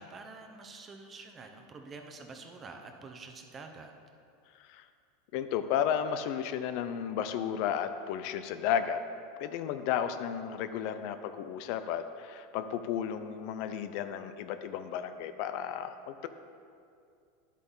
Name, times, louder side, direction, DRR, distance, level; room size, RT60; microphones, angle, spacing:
voice 1, 0.0-3.9, right 3 dB, 25° right, 4 dB, 0.9 m, -47 dB
voice 2, 5.3-9.0 9.4-16.3, left 9 dB, 60° left, 10 dB, 0.5 m, -33 dB
9.8 x 8.2 x 3.9 m, 2.4 s
supercardioid pair, 130°, 0 cm